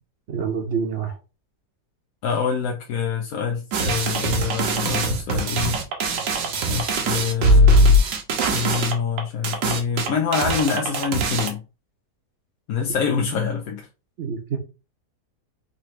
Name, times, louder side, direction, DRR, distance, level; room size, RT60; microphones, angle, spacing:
voice 1, 0.3-1.2 14.2-14.6, right 6 dB, 55° right, 0.9 m, -27 dB
voice 2, 2.2-5.8 6.6-8.0 8.5-11.6 12.7-13.9, left 6 dB, 70° left, 1.0 m, -25 dB
sound 1, 3.7-11.5, right 1 dB, 85° right, 1.4 m, -21 dB
3.9 x 3.0 x 3.1 m
omnidirectional pair, 1.7 m